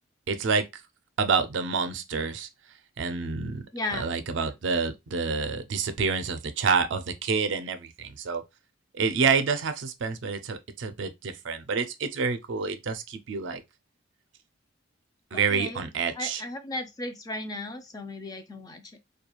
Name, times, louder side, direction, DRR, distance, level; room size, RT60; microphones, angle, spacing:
voice 1, 0.3-0.7 1.2-2.5 3.0-8.4 8.9-13.6 15.3-16.4, right 5 dB, 70° right, 0.4 m, -28 dB
voice 2, 3.7-4.2 15.3-15.8 16.1-19.0, left 2 dB, 20° left, 0.3 m, -35 dB
2.3 x 2.2 x 2.9 m
head